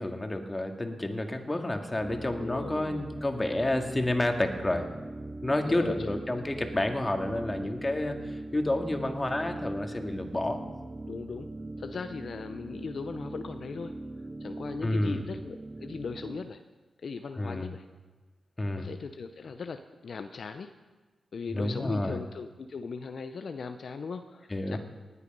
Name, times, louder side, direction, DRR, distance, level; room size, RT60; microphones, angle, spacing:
voice 1, 0.0-4.9 5.4-10.6 14.8-15.2 17.4-17.7 18.6-18.9 21.5-22.2 24.5-24.8, left 1 dB, 25° left, 4 dB, 1.9 m, -30 dB
sound 1, 2.0-16.5, right 2 dB, 30° right, 0.6 m, -41 dB
voice 2, 2.4-3.0 5.6-6.2 11.1-11.5 11.8-14.0 14.4-16.6 17.0-17.9 18.8-20.7 21.3-24.8, left 5 dB, 65° left, 8 dB, 0.6 m, -38 dB
19.0 x 8.4 x 5.4 m, 1.3 s
supercardioid pair, 45°, 0 cm